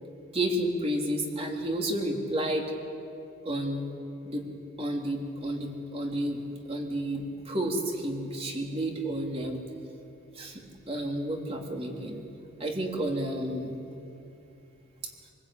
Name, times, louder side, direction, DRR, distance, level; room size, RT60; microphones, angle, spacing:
voice 1, 0.3-2.7 3.4-3.8 4.2-4.4 4.8-6.4 6.7-9.6 10.3-10.6 10.9-12.2 12.6-13.8, right 1 dB, 30° right, 1 dB, 3.2 m, -31 dB
27.0 x 19.5 x 8.9 m, 2.6 s
head